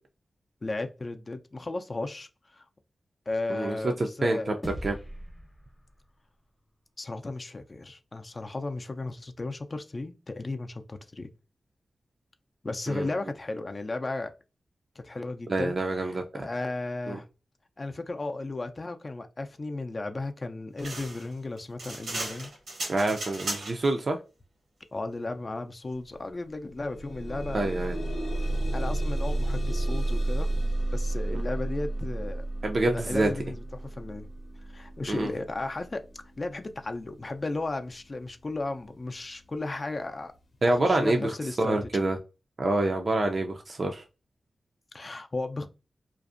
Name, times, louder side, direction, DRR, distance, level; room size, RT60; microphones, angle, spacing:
voice 1, 0.6-2.7 3.3-4.6 7.0-11.3 12.6-14.3 15.0-17.3 17.8-22.5 24.9-27.7 28.7-32.5 32.9-34.3 34.7-40.3 40.7-41.9 44.9-45.7, left 2 dB, 40° left, 0.4 m, -35 dB
voice 2, 3.5-4.5 4.8-5.0 12.9-13.1 15.5-16.4 17.1-17.2 22.9-24.2 27.5-28.0 31.3-31.4 32.6-33.3 35.1-35.3 40.6-41.3 41.6-42.2 42.6-44.0, right 2 dB, 55° right, 0.3 m, -26 dB
sound 1, 4.6-7.2, equal, 15° left, 0.7 m, -42 dB
sound 2, 20.8-23.9, right 2 dB, 90° right, 0.9 m, -36 dB
sound 3, 26.0-26.1 26.5-37.5 38.3-38.4 38.9-39.0, right 1 dB, 80° left, 0.7 m, -32 dB
2.5 x 2.0 x 2.4 m
cardioid pair, 60°, 0 cm